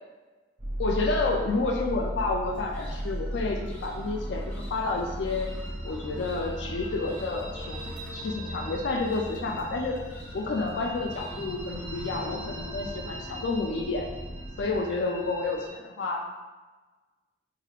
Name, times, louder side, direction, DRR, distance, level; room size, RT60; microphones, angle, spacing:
sound 1, 0.6-14.8, equal, 35° right, 1.0 m, -37 dB
voice 1, 0.8-5.6 5.8-10.0 10.3-14.1 14.6-16.2, left 3 dB, 80° left, 2 dB, 0.4 m, -30 dB
sound 2, 2.5-14.6, equal, 10° left, 0.6 m, -48 dB
sound 3, 5.5-15.7, right 1 dB, 65° right, 0.7 m, -44 dB
4.8 x 2.8 x 2.4 m, 1.3 s
head